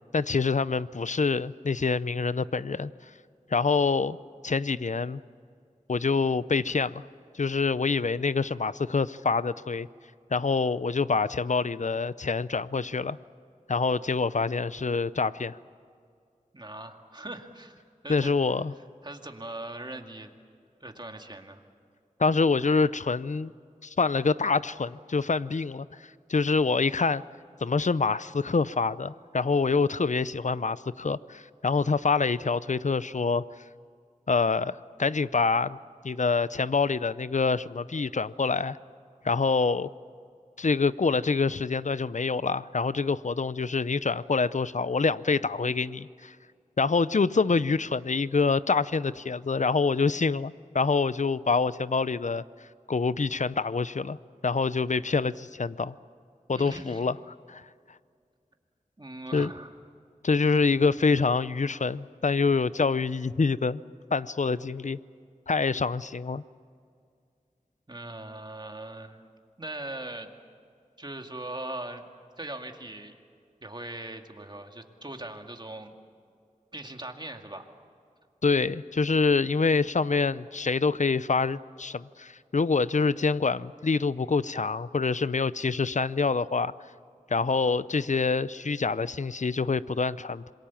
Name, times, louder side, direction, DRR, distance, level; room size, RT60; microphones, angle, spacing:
voice 1, 0.1-2.9 3.5-4.2 4.4-5.2 5.9-7.0 7.3-9.9 10.3-13.2 13.7-15.6 18.1-18.7 22.2-23.5 23.8-27.2 27.6-33.4 34.3-35.8 36.0-38.8 39.2-39.9 40.6-46.4 46.8-52.4 52.9-54.2 54.4-55.9 56.5-57.2 57.5-57.6 59.3-59.5 60.2-63.8 64.1-65.0 65.5-66.4 78.4-86.7 87.3-90.5, left 4 dB, 60° left, 16 dB, 0.6 m, -26 dB
voice 2, 16.5-18.3 19.0-20.3 20.8-21.6 56.5-57.1 59.0-59.7 67.9-69.3 69.6-70.3 71.0-72.0 72.4-73.1 73.6-75.9 76.7-77.7, right 1 dB, 30° right, 4 dB, 2.2 m, -40 dB
27.0 x 22.5 x 7.2 m, 2.3 s
wide cardioid pair, 60°, 14 cm